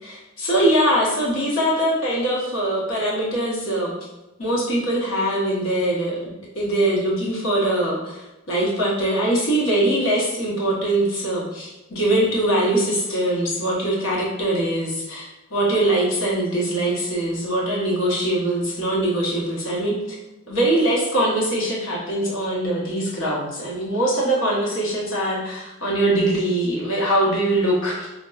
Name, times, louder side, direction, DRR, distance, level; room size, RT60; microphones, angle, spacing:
voice 1, 0.0-3.9 4.4-20.2 20.5-28.1, right 1 dB, 70° left, -4 dB, 1.0 m, -22 dB
4.0 x 2.2 x 2.3 m, 1.0 s
head